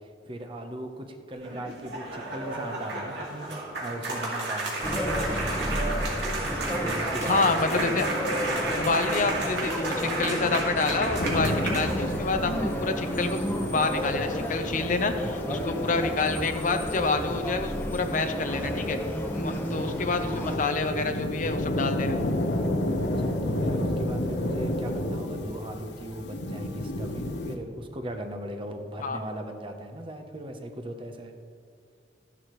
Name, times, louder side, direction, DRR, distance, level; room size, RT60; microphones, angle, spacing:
voice 1, 0.0-5.4 6.7-7.6 23.2-31.3, right 1 dB, 30° right, 5 dB, 0.8 m, -38 dB
sound 1, 1.3-12.3, right 2 dB, 80° right, 2.4 m, -32 dB
sound 2, 4.8-20.6, equal, 10° left, 1.0 m, -32 dB
voice 2, 7.2-8.1 8.7-13.4 13.7-19.0 19.3-22.2 29.0-29.2, left 3 dB, 45° left, 7 dB, 0.7 m, -28 dB
sound 3, 11.2-27.6, left 1 dB, 75° left, 1.0 m, -32 dB
13.5 x 11.0 x 3.1 m, 2.2 s
head